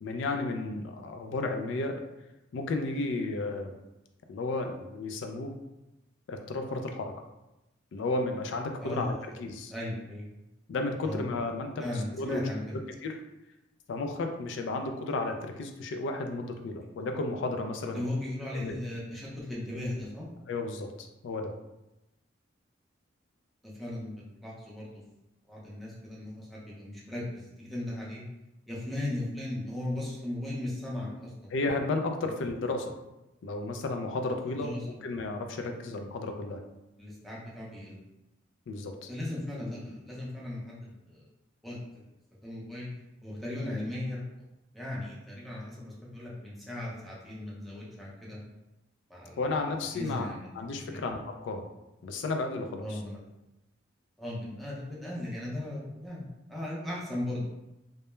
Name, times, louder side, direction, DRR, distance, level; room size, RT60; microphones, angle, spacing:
voice 1, 0.0-2.0 2.5-3.7 4.3-5.5 6.3-7.1 7.9-9.7 10.7-11.8 12.2-12.4 13.0-13.1 13.9-18.0 18.5-18.8 20.5-20.9 21.2-21.5 31.5-32.9 33.4-34.7 35.0-36.6 38.7-39.1 49.4-51.6 52.0-53.0, left 2 dB, 65° left, 5 dB, 0.3 m, -33 dB
voice 2, 8.8-9.1 9.7-10.2 11.0-11.2 11.8-12.8 17.9-20.3 23.6-25.0 25.5-28.2 28.7-31.5 32.2-32.3 34.6-34.9 37.0-38.0 39.1-41.2 41.6-42.1 42.4-42.9 43.2-44.2 44.7-48.4 49.1-49.7 49.9-51.0 52.8-53.2 54.2-57.4, left 1 dB, ahead, -6 dB, 0.5 m, -37 dB
2.2 x 2.0 x 3.0 m, 0.96 s
head